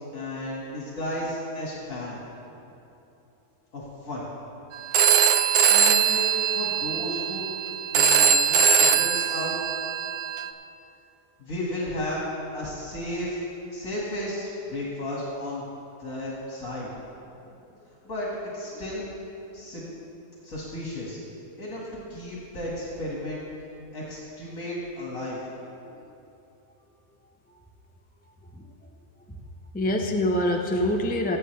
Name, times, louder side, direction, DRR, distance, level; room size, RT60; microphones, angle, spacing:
voice 1, 0.1-2.2 3.7-4.3 5.7-7.5 7.9-9.5 11.4-12.3 12.5-13.4 13.7-15.6 16.0-16.9 18.0-18.3 18.5-19.1 19.5-19.8 20.4-21.2 21.6-23.4 23.9-25.4, left 1 dB, 60° left, -6 dB, 2.5 m, -33 dB
Telephone, 4.9-10.5, right 7 dB, 80° right, 1.1 m, -21 dB
voice 2, 28.5-28.9 29.3-29.4 29.7-31.4, left 1 dB, 15° left, 2 dB, 0.4 m, -26 dB
20.5 x 8.4 x 3.4 m, 2.8 s
omnidirectional pair, 1.6 m